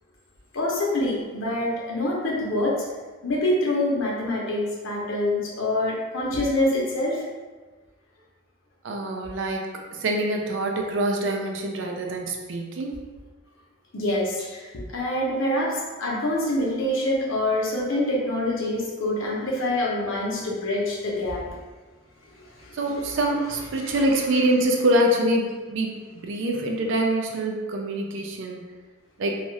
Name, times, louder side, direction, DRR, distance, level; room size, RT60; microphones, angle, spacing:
voice 1, 0.5-2.9 3.2-7.2 13.9-21.5 22.6-22.8 23.8-24.0, left 1 dB, 70° left, -3 dB, 0.7 m, -26 dB
voice 2, 8.8-13.0 22.7-25.9 26.1-28.6 29.2-29.4, right 1 dB, 65° right, 2 dB, 0.4 m, -25 dB
2.6 x 2.4 x 3.1 m, 1.3 s
head